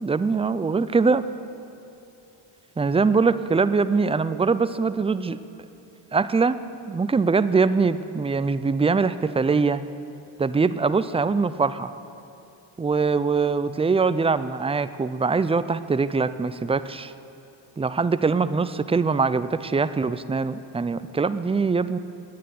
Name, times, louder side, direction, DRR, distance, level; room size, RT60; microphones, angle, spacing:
voice 1, 0.0-1.2 2.8-5.4 6.1-6.6 6.9-9.8 10.4-11.9 12.8-17.1 17.8-22.0, right 4 dB, 15° right, 14 dB, 0.3 m, -22 dB
10.5 x 9.9 x 9.3 m, 2.8 s
cardioid pair, 65°, 50 cm